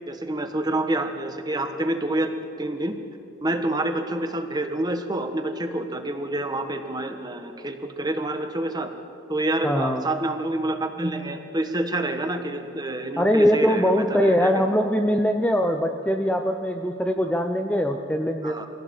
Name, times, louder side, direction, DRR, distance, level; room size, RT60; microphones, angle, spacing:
voice 1, 0.1-2.3 2.6-3.0 3.4-8.9 9.3-14.5 18.4-18.7, right 1 dB, 20° right, 6 dB, 1.4 m, -27 dB
voice 2, 9.6-10.0 13.2-18.6, equal, 5° left, 4 dB, 0.8 m, -22 dB
23.5 x 17.0 x 8.7 m, 2.6 s
head